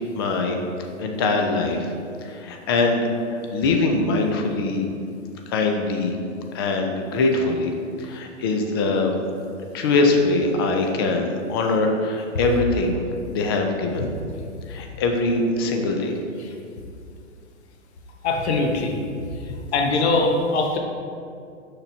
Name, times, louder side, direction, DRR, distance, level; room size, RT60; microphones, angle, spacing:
voice 1, 0.2-0.6 1.0-1.9 2.2-4.9 5.5-6.2 6.5-9.1 9.7-13.0 13.3-14.1 14.7-16.2, left 3 dB, 20° left, 3 dB, 0.4 m, -22 dB
voice 2, 18.2-18.9 19.2-19.3 19.7-20.8, left 3 dB, 60° left, 2 dB, 1.0 m, -21 dB
6.5 x 5.9 x 2.7 m, 2.4 s
hypercardioid pair, 125°, 38 cm